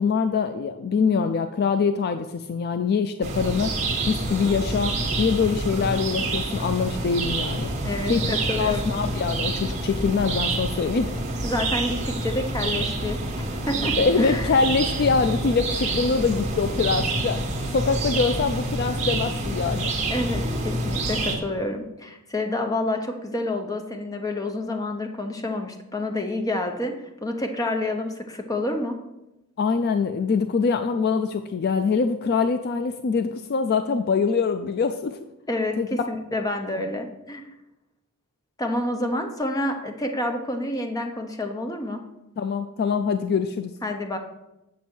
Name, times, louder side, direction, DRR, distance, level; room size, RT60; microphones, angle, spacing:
voice 1, 0.0-3.8 4.1-7.7 8.1-8.2 8.6-11.1 14.0-17.4 17.7-19.9 29.6-35.2 35.8-35.9 42.4-43.7, left 5 dB, 45° left, 8 dB, 0.3 m, -24 dB
sound 1, 3.2-21.4, right 2 dB, 30° right, 1.3 m, -27 dB
voice 2, 7.8-8.9 11.4-14.5 20.1-26.9 27.2-29.0 35.5-35.8 36.1-37.4 38.6-42.0 43.8-44.2, left 1 dB, 15° left, 5 dB, 0.8 m, -28 dB
8.5 x 6.1 x 4.4 m, 0.94 s
head